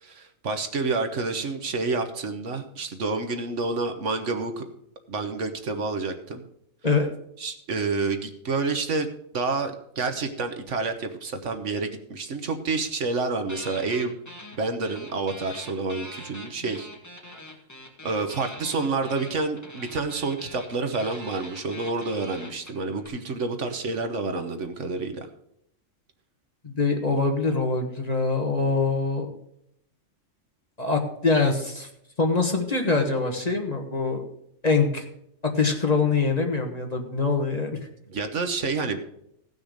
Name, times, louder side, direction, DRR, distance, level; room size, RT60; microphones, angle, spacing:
voice 1, 0.0-4.7 5.1-6.4 7.4-9.1 9.3-14.1 14.5-16.9 18.0-25.3 38.1-39.0, right 3 dB, 65° right, 7 dB, 1.4 m, -28 dB
sound 1, 13.5-14.6 14.8-23.1, left 1 dB, 15° left, 1.7 m, -43 dB
voice 2, 26.6-29.3 30.8-31.9 32.2-34.2 34.6-35.0 35.4-37.8, left 4 dB, 30° left, 3 dB, 1.4 m, -24 dB
16.5 x 6.2 x 5.1 m, 0.75 s
omnidirectional pair, 1.4 m